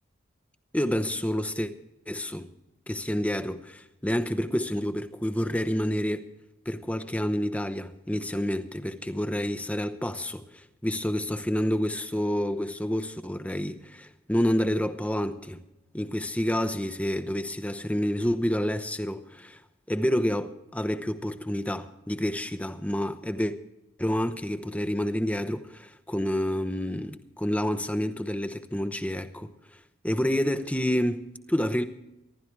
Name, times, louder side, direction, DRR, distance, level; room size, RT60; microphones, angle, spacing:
voice 1, 0.7-1.7 2.1-2.5 2.9-6.2 6.7-15.6 15.9-19.6 19.9-23.5 24.0-29.5 30.0-31.8, equal, 5° left, 0.8 m, -28 dB
25.5 x 12.0 x 3.3 m
head